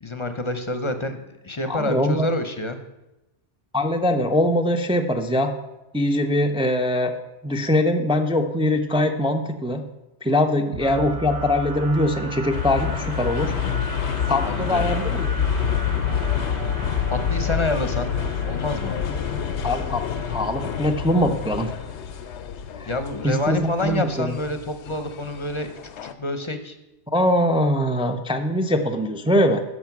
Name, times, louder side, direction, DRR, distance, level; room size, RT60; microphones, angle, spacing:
voice 1, 0.0-2.8 14.4-14.9 17.1-18.1 18.5-19.0 22.9-25.7 26.0-26.8, left 2 dB, 30° left, 9 dB, 0.7 m, -27 dB
voice 2, 1.7-2.3 3.7-5.5 5.9-7.2 7.4-9.8 10.2-13.6 14.3-15.3 19.6-21.7 22.7-22.9 23.2-24.3 27.1-29.6, left 1 dB, 5° right, 5 dB, 0.4 m, -22 dB
sound 1, 10.7-22.5, right 3 dB, 50° right, 1.2 m, -37 dB
sound 2, 12.5-26.1, left 8 dB, 75° left, 0.9 m, -27 dB
11.0 x 6.5 x 5.9 m, 0.97 s
omnidirectional pair, 1.2 m